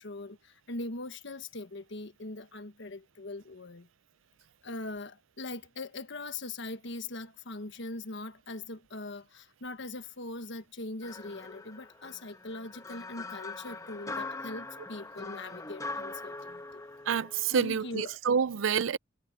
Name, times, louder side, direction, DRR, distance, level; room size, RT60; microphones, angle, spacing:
voice 1, 0.0-3.9 4.6-16.8 17.5-18.2, left 2 dB, 65° left, 1.4 m, -41 dB
sound 1, 11.0-18.1, left 3 dB, 15° left, 1.2 m, -42 dB
voice 2, 17.1-19.0, right 7 dB, 75° right, 0.5 m, -28 dB
head